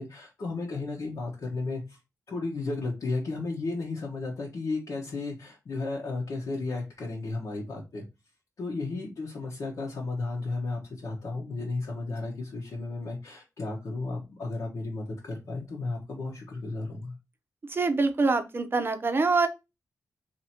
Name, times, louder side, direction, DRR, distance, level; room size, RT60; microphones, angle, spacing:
voice 1, 0.0-2.0 2.3-8.0 8.6-17.1, left 3 dB, 65° left, 1.1 m, -34 dB
voice 2, 17.7-19.5, right 3 dB, 35° right, 0.7 m, -25 dB
2.9 x 2.7 x 4.3 m
cardioid pair, 80°, 6 cm